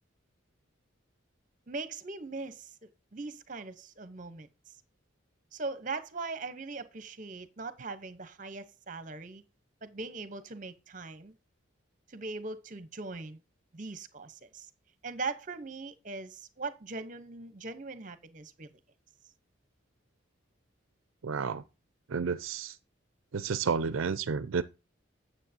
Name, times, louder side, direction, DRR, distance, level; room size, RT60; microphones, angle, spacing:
voice 1, 1.7-4.5 5.5-9.4 9.8-11.3 12.1-13.4 13.7-14.7 15.0-18.7, right 3 dB, 40° right, 0.8 m, -40 dB
voice 2, 21.2-21.6 22.1-22.8 23.3-24.6, right 5 dB, 80° right, 0.5 m, -31 dB
9.1 x 7.4 x 2.7 m
head